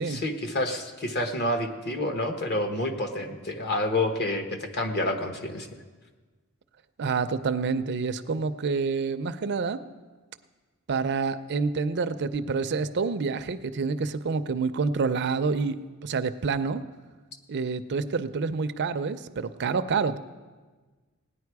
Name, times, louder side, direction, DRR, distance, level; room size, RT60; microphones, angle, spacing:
voice 1, 0.0-5.7, left 1 dB, 50° left, 6 dB, 1.2 m, -28 dB
voice 2, 7.0-9.8 10.9-15.8 16.0-16.8 17.5-20.2, right 4 dB, 50° right, 11 dB, 0.5 m, -28 dB
17.5 x 10.0 x 4.7 m, 1.4 s
head